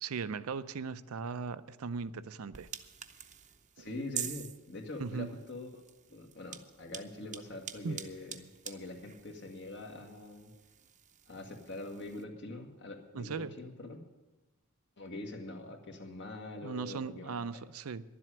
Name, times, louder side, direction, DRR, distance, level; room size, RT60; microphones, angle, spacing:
voice 1, 0.0-2.7 3.8-3.9 5.0-5.3 7.8-8.0 13.1-13.5 16.6-18.0, right 5 dB, 75° right, 14 dB, 0.5 m, -38 dB
sound 1, 2.5-12.2, right 9 dB, 35° right, 0.7 m, -47 dB
voice 2, 3.8-5.8 6.1-10.5 11.3-14.0 15.0-17.6, left 2 dB, 55° left, 3 dB, 1.7 m, -44 dB
11.0 x 7.6 x 9.9 m, 1.1 s
head